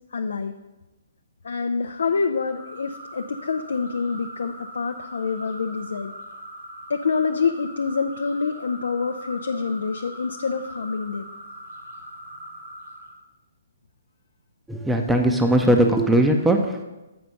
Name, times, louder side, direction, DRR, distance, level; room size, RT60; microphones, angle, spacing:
voice 1, 0.1-0.6 1.4-6.1 6.9-11.3, left 5 dB, 70° left, 7 dB, 0.4 m, -26 dB
sound 1, 2.3-13.2, equal, 65° right, 2.0 m, -41 dB
voice 2, 14.7-16.8, right 1 dB, 5° right, 3 dB, 0.6 m, -19 dB
7.7 x 5.0 x 5.7 m, 1.0 s
figure-of-eight pair, 130°, 0 cm